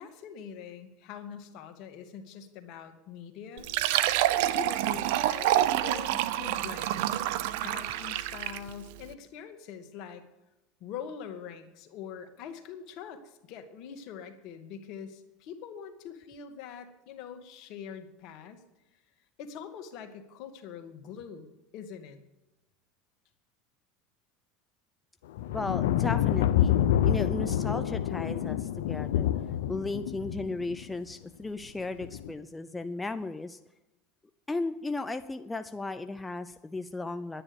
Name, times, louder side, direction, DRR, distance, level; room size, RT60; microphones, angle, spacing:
voice 1, 0.0-3.7 4.5-5.5 5.8-7.3 7.6-10.2 10.8-18.6 19.4-21.5 21.7-22.2, left 7 dB, 60° left, 7 dB, 1.9 m, -43 dB
Fill (with liquid), 3.6-8.7, right 13 dB, 75° right, 0.7 m, -27 dB
sound 1, 25.4-30.8 32.0-32.3, left 11 dB, 85° left, 0.7 m, -27 dB
voice 2, 25.5-29.3 29.7-33.6 34.5-37.4, left 3 dB, 10° left, 9 dB, 0.6 m, -35 dB
11.0 x 9.9 x 7.0 m, 0.97 s
supercardioid pair, 105°, 0 cm